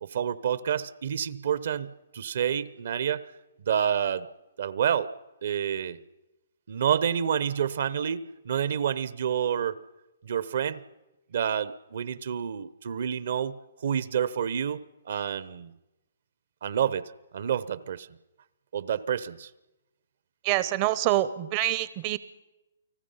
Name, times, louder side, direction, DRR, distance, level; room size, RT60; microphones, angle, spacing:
voice 1, 0.0-3.2 3.7-4.3 4.6-5.1 5.4-6.0 6.7-9.8 10.2-10.8 11.3-15.7 16.6-18.1 18.7-19.5, right 8 dB, 65° right, 18 dB, 0.8 m, -29 dB
voice 2, 20.4-22.2, right 15 dB, 35° right, 16 dB, 0.7 m, -26 dB
29.5 x 19.0 x 5.6 m, 1.0 s
hypercardioid pair, 140°, 0 cm